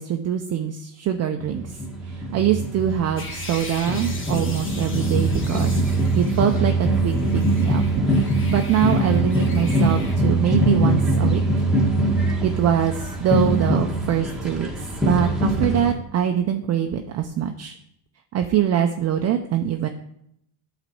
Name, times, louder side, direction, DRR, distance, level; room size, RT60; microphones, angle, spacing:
voice 1, 0.0-1.8 2.1-5.7 6.1-7.8 8.2-11.6 12.4-14.7 15.0-17.8 18.3-19.9, right 9 dB, 35° right, 5 dB, 0.5 m, -23 dB
sound 1, 1.4-15.9, right 1 dB, ahead, 1.3 m, -22 dB
sound 2, 3.2-6.6 6.9-10.2, left 3 dB, 25° left, 1.3 m, -39 dB
9.0 x 4.1 x 7.0 m, 0.75 s
cardioid pair, 130°, 44 cm